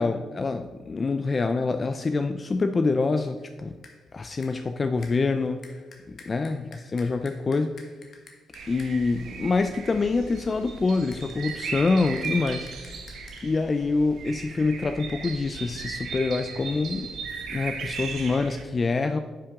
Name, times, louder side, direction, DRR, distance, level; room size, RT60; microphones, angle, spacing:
voice 1, 0.0-3.7 4.1-5.6 6.3-7.8 8.7-12.7 13.4-17.1 17.5-19.2, left 3 dB, 30° left, 8 dB, 0.4 m, -26 dB
sound 1, 3.4-3.6 3.8-4.1 4.4-4.7 5.0-9.1 11.1-13.4, left 4 dB, 50° left, 1.4 m, -51 dB
sound 2, 8.5-18.6, right 5 dB, 70° right, 1.2 m, -37 dB
9.8 x 5.8 x 3.6 m, 1.3 s
cardioid pair, 90°, 0 cm